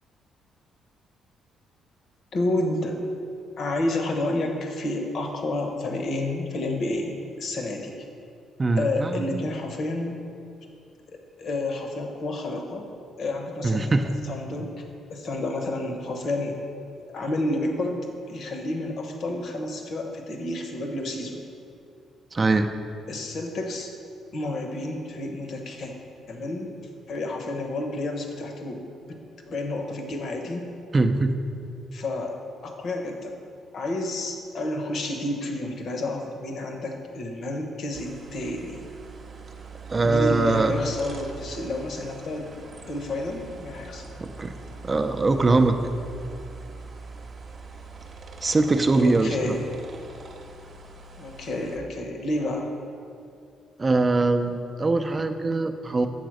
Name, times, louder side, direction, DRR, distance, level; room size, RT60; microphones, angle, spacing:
voice 1, 2.3-3.0 3.6-8.0 8.8-10.2 11.1-12.9 13.2-13.9 14.3-14.8 15.1-16.6 17.1-21.4 23.1-23.9 24.3-25.9 26.3-26.7 27.1-28.8 29.1-29.2 29.5-30.7 31.9-33.4 33.7-38.9 40.0-42.5 42.8-44.1 48.9-49.7 51.1-52.7, left 2 dB, 60° left, 3 dB, 1.0 m, -30 dB
voice 2, 8.6-9.4 13.6-14.1 22.3-22.7 30.9-31.3 39.9-40.7 44.2-44.5 44.8-45.8 48.4-49.6 53.8-56.1, right 3 dB, 25° right, 7 dB, 0.5 m, -22 dB
sound 1, 37.9-51.8, right 3 dB, 45° right, 0.9 m, -42 dB
7.8 x 3.9 x 6.3 m, 2.5 s
cardioid pair, 95°, 0 cm